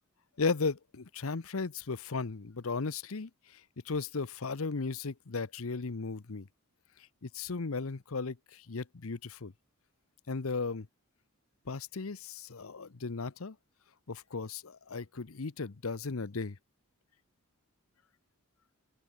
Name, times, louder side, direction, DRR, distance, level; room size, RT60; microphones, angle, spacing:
voice 1, 0.4-3.6 3.9-6.5 7.2-9.5 10.3-10.9 11.7-13.6 14.1-16.6, left 4 dB, 65° left, 0.8 m, -36 dB
open air
head